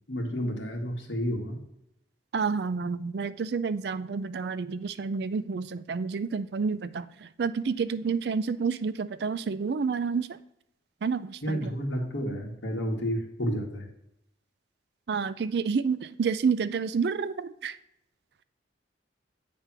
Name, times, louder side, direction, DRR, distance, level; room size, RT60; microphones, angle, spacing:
voice 1, 0.1-1.6 11.4-13.8, equal, 85° left, 2 dB, 1.6 m, -31 dB
voice 2, 2.3-10.4 11.0-11.7 15.1-17.8, right 5 dB, 60° right, 14 dB, 0.4 m, -29 dB
8.2 x 3.4 x 5.9 m, 0.80 s
head